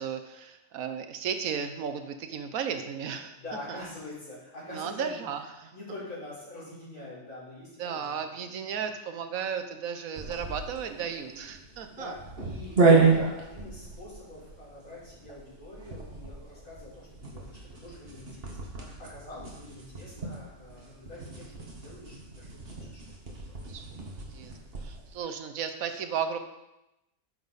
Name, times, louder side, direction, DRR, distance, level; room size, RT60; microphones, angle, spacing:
voice 1, 0.0-3.4 3.7-3.8 4.7-5.7 7.8-12.1 13.1-13.3 23.7-24.5 24.8-26.4, right 7 dB, 75° right, 8 dB, 1.2 m, -35 dB
voice 2, 3.3-5.2 5.7-8.5 11.9-21.5 21.8-22.5 22.8-23.4, left 1 dB, 90° left, -9 dB, 4.5 m, -45 dB
sound 1, 10.1-25.1, right 4 dB, 45° right, 1.7 m, -31 dB
10.0 x 6.3 x 4.0 m, 0.93 s
omnidirectional pair, 1.5 m